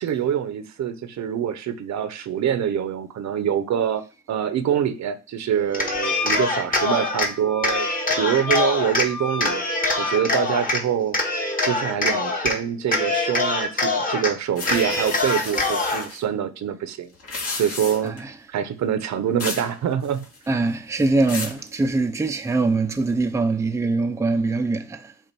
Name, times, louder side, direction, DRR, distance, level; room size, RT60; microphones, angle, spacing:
voice 1, 0.0-4.0 4.3-7.9 8.2-9.6 10.0-11.2 11.6-17.1 17.5-18.1 18.5-20.3, right 9 dB, 65° right, 0.8 m, -25 dB
Cheering, 5.7-7.3 7.6-9.1 9.4-10.8 11.1-12.6 12.8-14.3 14.6-16.1, left 2 dB, 30° left, 1.4 m, -24 dB
Wind instrument woodwind instrument, 6.0-10.3, left 3 dB, 75° left, 0.8 m, -32 dB
sound 1, 14.6-16.2 17.1-18.2 19.4-19.7 20.0-20.5 21.0-21.6, left 3 dB, 55° left, 2.1 m, -32 dB
voice 2, 18.0-18.3 20.5-25.3, right 3 dB, 10° right, 0.5 m, -23 dB
7.4 x 2.5 x 5.2 m
cardioid pair, 90°, 30 cm